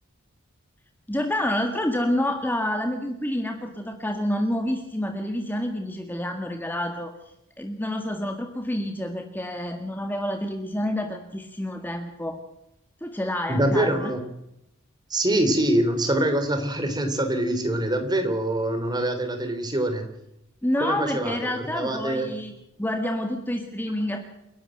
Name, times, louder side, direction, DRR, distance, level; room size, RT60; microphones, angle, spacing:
voice 1, 1.1-7.1 7.6-12.4 13.0-14.1 20.6-22.5 22.8-24.2, left 1 dB, 10° left, 4 dB, 1.7 m, -28 dB
voice 2, 13.5-14.2 15.1-20.0 20.8-22.4, right 1 dB, 20° right, 7 dB, 3.3 m, -24 dB
29.0 x 11.5 x 7.8 m, 0.84 s
head